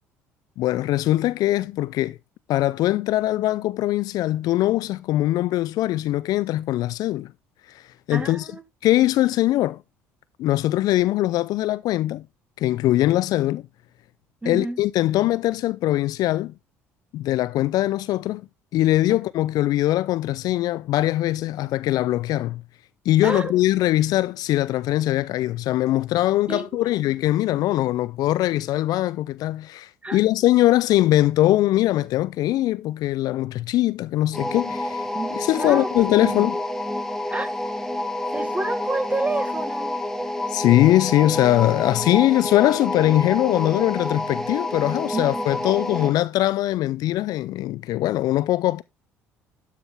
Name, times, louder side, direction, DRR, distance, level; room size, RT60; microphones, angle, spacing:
voice 1, 0.6-2.2 2.5-7.3 7.7-8.5 8.8-9.8 10.4-12.3 12.6-13.6 14.5-16.5 17.1-18.4 18.7-22.6 23.1-35.1 35.4-36.6 40.5-48.8, left 15 dB, 55° left, 0.4 m, -21 dB
voice 2, 8.1-8.6 14.4-14.8 19.1-19.2 23.2-23.5 26.5-26.9 30.0-30.2 35.1-35.9 36.2-36.5 37.3-37.5 38.3-40.0 45.1-45.5, right 2 dB, 15° right, 1.7 m, -29 dB
sound 1, 34.3-46.2, left 1 dB, 5° left, 1.3 m, -29 dB
12.0 x 5.9 x 3.4 m
hypercardioid pair, 55°, 8 cm